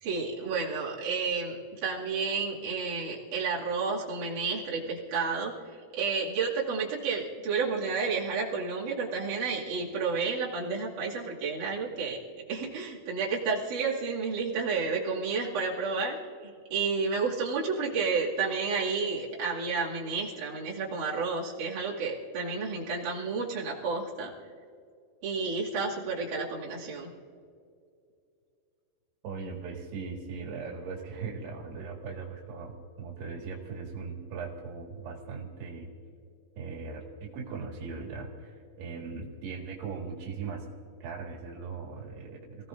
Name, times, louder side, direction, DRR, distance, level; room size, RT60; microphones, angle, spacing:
voice 1, 0.0-12.2 12.5-16.2 16.4-24.3 25.2-27.1, right 4 dB, 55° right, -5 dB, 3.7 m, -31 dB
voice 2, 29.2-35.9 36.6-40.7 41.0-42.7, right 5 dB, 85° right, -1 dB, 4.0 m, -39 dB
28.0 x 17.0 x 2.6 m, 2.4 s
omnidirectional pair, 4.5 m